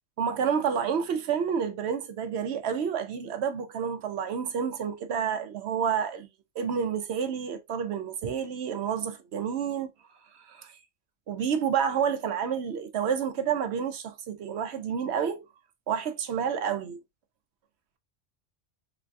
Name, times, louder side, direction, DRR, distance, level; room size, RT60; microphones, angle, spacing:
voice 1, 0.2-6.3 6.6-9.9 10.5-10.7 11.3-15.4 15.9-17.0, right 7 dB, 65° right, 0.8 m, -29 dB
3.9 x 2.3 x 2.5 m
omnidirectional pair, 1.2 m